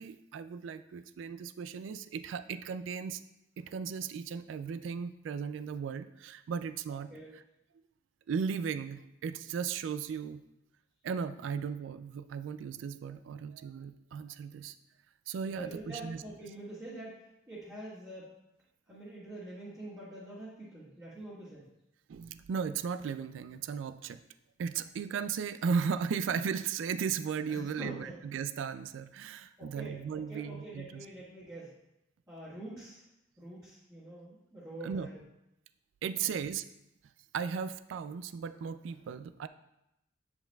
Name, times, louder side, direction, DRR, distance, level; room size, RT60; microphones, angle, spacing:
voice 1, 0.0-3.2 3.6-7.1 8.3-10.4 11.0-14.7 15.3-16.2 22.1-24.2 24.6-31.0 34.8-35.1 36.0-36.6 37.3-39.5, right 6 dB, 70° right, 12 dB, 0.3 m, -36 dB
voice 2, 15.4-18.3 18.9-21.7 27.5-28.1 29.6-31.7 32.3-33.0 33.4-35.2 36.1-36.4, right 1 dB, 15° right, -12 dB, 1.5 m, -45 dB
8.6 x 5.6 x 2.3 m, 0.88 s
head